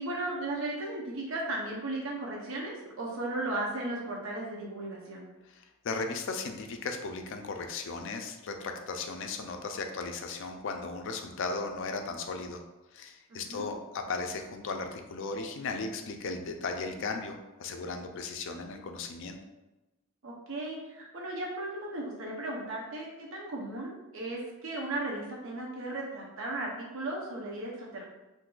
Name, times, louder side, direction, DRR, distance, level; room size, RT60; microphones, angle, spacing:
voice 1, 0.0-5.3 13.3-13.7 20.2-28.0, right 2 dB, 65° right, -3 dB, 0.6 m, -36 dB
voice 2, 5.5-12.6 12.9-19.4, left 4 dB, 60° left, 5 dB, 0.4 m, -36 dB
2.6 x 2.3 x 3.7 m, 1.1 s
head